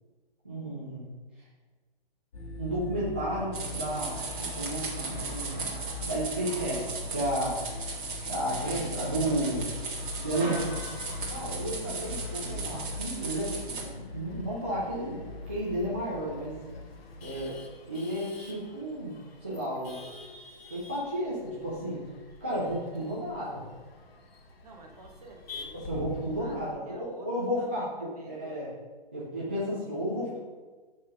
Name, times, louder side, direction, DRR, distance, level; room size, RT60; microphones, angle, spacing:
voice 1, 0.4-1.1 2.6-7.6 8.3-9.7 10.2-10.5 11.3-15.2 15.5-16.6 17.2-17.6 17.9-20.0 20.7-22.0 22.4-23.6 25.7-28.7 29.1-30.4, right 1 dB, 10° right, -9 dB, 0.4 m, -32 dB
sound 1, 2.3-17.6, left 3 dB, 35° left, 0.9 m, -41 dB
sound 2, 3.5-13.8, right 4 dB, 55° right, 1.9 m, -37 dB
Male speech man speaking / Laughter / Chatter, 9.2-26.7, left 3 dB, 85° left, 1.3 m, -49 dB
voice 2, 10.1-10.9 24.6-25.8 26.4-28.6, right 2 dB, 40° right, 1 dB, 1.1 m, -50 dB
6.2 x 3.9 x 5.6 m, 1.3 s
hypercardioid pair, 170°, 30 cm